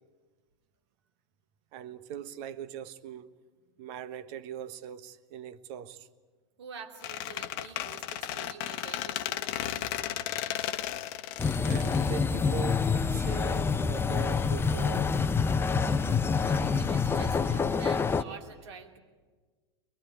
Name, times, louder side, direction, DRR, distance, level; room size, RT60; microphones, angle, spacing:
voice 1, 1.7-3.3 3.8-6.1 11.6-15.2, right 9 dB, 50° right, 1.3 m, -41 dB
voice 2, 6.6-9.9 16.5-19.0, right 6 dB, 70° right, 3.0 m, -47 dB
Squeak, 7.0-12.8, left 12 dB, 50° left, 1.1 m, -35 dB
sound 1, 11.4-18.2, left 5 dB, 15° left, 0.8 m, -27 dB
23.0 x 21.5 x 9.3 m
hypercardioid pair, 95°, 15 cm